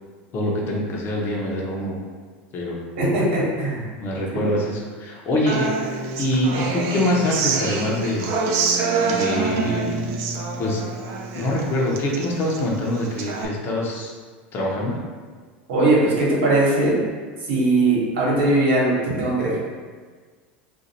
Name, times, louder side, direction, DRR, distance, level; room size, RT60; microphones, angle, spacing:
voice 1, 0.3-2.0 2.5-2.8 4.0-5.7 6.2-8.3 9.0-10.1 10.6-10.8 11.3-14.1 14.5-15.0, left 1 dB, 40° left, -3 dB, 0.8 m, -24 dB
voice 2, 3.0-3.8 4.3-4.4 15.7-17.0 17.5-19.6, right 2 dB, 75° right, -6 dB, 1.3 m, -20 dB
Human voice / Acoustic guitar, 5.5-13.4, right 4 dB, 55° right, 0.4 m, -26 dB
2.5 x 2.4 x 4.1 m, 1.5 s
hypercardioid pair, 95°, 6 cm